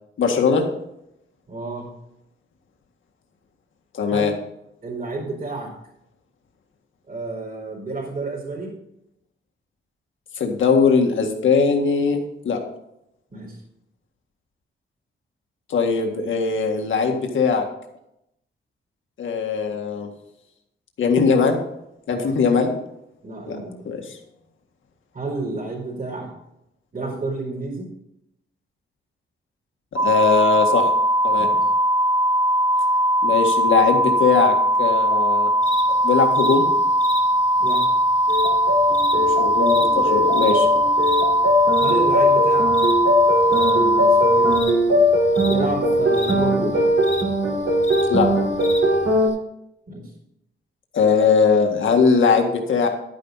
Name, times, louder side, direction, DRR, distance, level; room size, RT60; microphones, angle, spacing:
voice 1, 0.2-0.6 3.9-4.3 10.4-12.2 12.4-12.6 15.7-17.7 19.2-20.1 21.0-21.6 22.1-22.7 23.5-23.6 23.9-24.2 29.9-30.9 31.2-31.5 33.2-35.5 35.9-36.7 39.1-40.7 48.1-48.3 50.9-52.9, left 5 dB, 80° left, 2 dB, 1.9 m, -20 dB
voice 2, 1.5-1.9 4.1-4.3 4.8-5.7 7.1-8.7 13.3-13.6 22.1-22.3 23.2-23.8 25.1-26.3 26.9-27.9 31.4-31.7 37.6-37.8 41.8-42.7 43.5-44.6 45.4-46.8 49.9-50.1, right 3 dB, 45° right, -4 dB, 4.6 m, -30 dB
sound 1, 30.0-44.6, right 1 dB, 25° right, 0.9 m, -19 dB
sound 2, 35.6-49.3, left 2 dB, 35° left, 1.6 m, -35 dB
sound 3, 38.3-49.3, left 1 dB, 80° right, 4.2 m, -20 dB
11.5 x 10.5 x 4.1 m, 0.81 s
wide cardioid pair, 140°, 20 cm